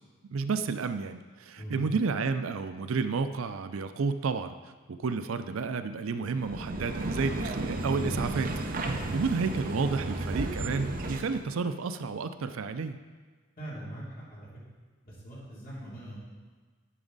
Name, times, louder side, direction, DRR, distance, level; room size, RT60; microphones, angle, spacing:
voice 1, 0.3-4.5 4.9-13.0, right 4 dB, 80° right, 10 dB, 0.5 m, -31 dB
sound 1, 6.3-11.4, right 2 dB, 45° right, 0.7 m, -33 dB
voice 2, 13.6-14.5 15.0-16.2, right 1 dB, 45° left, -7 dB, 2.8 m, -41 dB
11.0 x 6.1 x 4.0 m, 1.4 s
head